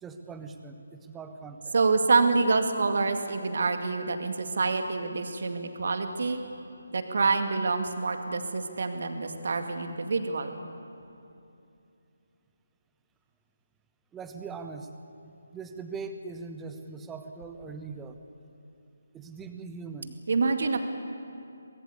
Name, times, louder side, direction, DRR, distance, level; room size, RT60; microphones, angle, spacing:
voice 1, 0.0-1.7 14.1-14.9 15.2-18.2 19.1-20.2, right 4 dB, 10° right, 7 dB, 1.2 m, -41 dB
voice 2, 1.7-6.4 6.9-10.5 20.3-20.8, right 4 dB, 50° right, 7 dB, 2.2 m, -26 dB
24.0 x 20.5 x 8.4 m, 2.7 s
figure-of-eight pair, 150°, 0 cm